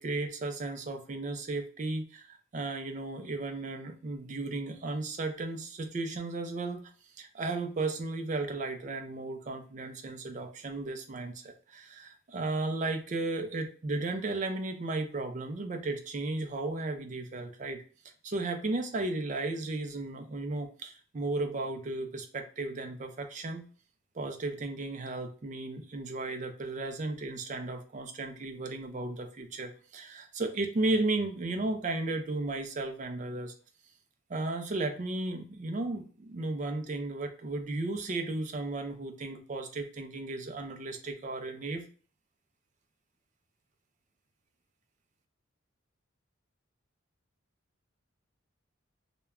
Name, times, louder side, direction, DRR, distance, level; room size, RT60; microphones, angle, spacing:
voice 1, 0.0-6.9 7.2-17.8 18.2-23.7 24.2-33.5 34.3-41.9, right 2 dB, 35° right, 5 dB, 0.4 m, -34 dB
2.2 x 2.1 x 3.5 m, 0.40 s
head